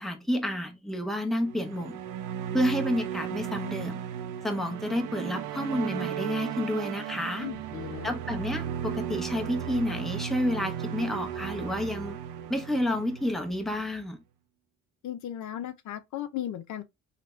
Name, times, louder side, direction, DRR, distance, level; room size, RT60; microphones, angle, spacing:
voice 1, 0.0-2.0 2.5-4.0 4.4-7.5 8.0-12.2 12.5-14.2, left 1 dB, ahead, 0.8 m, -30 dB
sound 1, 1.4-13.9, right 10 dB, 90° right, 0.6 m, -35 dB
voice 2, 7.4-8.1 15.0-16.8, left 11 dB, 75° left, 0.6 m, -36 dB
3.3 x 2.4 x 3.1 m
cardioid pair, 90°, 30 cm